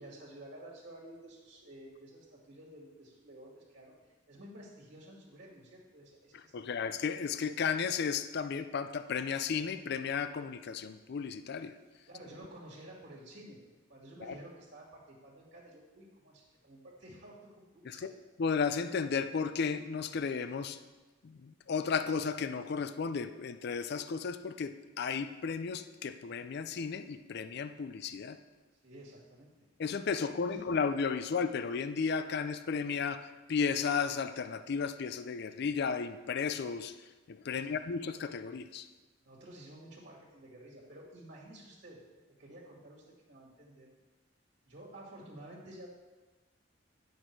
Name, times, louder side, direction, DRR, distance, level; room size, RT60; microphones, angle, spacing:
voice 1, 0.0-4.0 4.3-6.9 12.1-13.6 13.9-18.0 28.8-29.5 30.4-30.6 37.5-37.8 39.2-42.0 42.4-43.9 44.6-45.9, right 1 dB, 60° right, -4 dB, 2.1 m, -52 dB
voice 2, 6.5-11.8 14.2-14.3 17.8-20.8 21.2-28.4 29.8-36.9 37.3-38.9, left 5 dB, 55° left, 11 dB, 0.4 m, -34 dB
10.0 x 6.4 x 4.6 m, 1.2 s
head